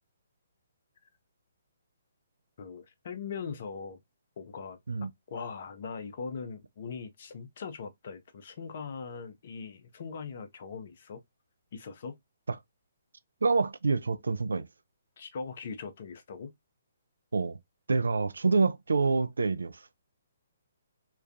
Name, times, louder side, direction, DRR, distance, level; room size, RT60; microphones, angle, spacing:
voice 1, 2.6-4.0 4.4-11.2 11.7-12.2 15.2-16.5, left 5 dB, 50° left, 0.5 m, -40 dB
voice 2, 13.4-14.7 17.3-17.6 17.9-19.8, right 4 dB, 70° right, 0.3 m, -27 dB
2.3 x 2.2 x 2.4 m
figure-of-eight pair, 130°, 0 cm